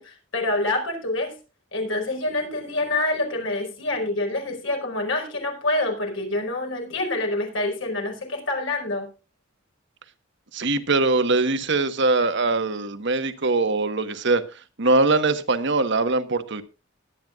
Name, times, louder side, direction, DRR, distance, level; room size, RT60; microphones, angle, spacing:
voice 1, 0.0-1.3 1.7-9.1, left 2 dB, 80° left, 5.1 m, -26 dB
voice 2, 10.5-14.4 14.8-16.6, right 3 dB, 65° right, 1.3 m, -22 dB
21.5 x 9.5 x 2.4 m
head